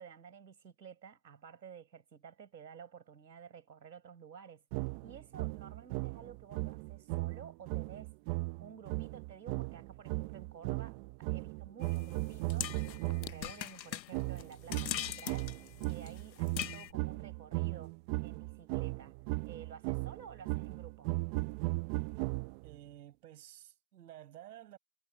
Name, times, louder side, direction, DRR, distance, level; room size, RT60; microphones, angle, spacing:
voice 1, 0.0-8.1 8.6-19.1 19.4-21.1, right 7 dB, 90° right, 5.3 m, -52 dB
sound 1, 4.7-13.5 14.1-22.8, right 24 dB, 30° right, 0.9 m, -37 dB
sound 2, 11.8-16.9, left 12 dB, 85° left, 0.8 m, -41 dB
voice 2, 22.6-24.8, right 12 dB, 65° right, 5.6 m, -52 dB
hypercardioid pair, 130°, 50 cm